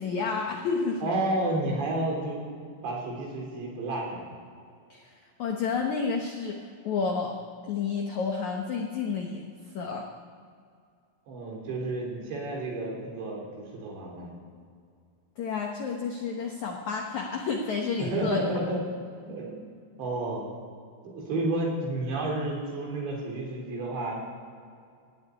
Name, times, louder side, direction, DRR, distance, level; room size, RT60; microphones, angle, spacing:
voice 1, 0.0-1.1 4.9-5.1 5.4-7.4 7.6-9.5 9.7-10.1 15.4-18.4, left 5 dB, 90° left, 1 dB, 1.6 m, -30 dB
voice 2, 1.0-2.4 2.8-4.2 11.3-14.3 18.0-18.8 19.3-19.5 20.0-20.4 21.0-24.2, right 2 dB, 70° right, -1 dB, 5.9 m, -31 dB
17.0 x 8.6 x 9.8 m, 2.2 s
omnidirectional pair, 5.3 m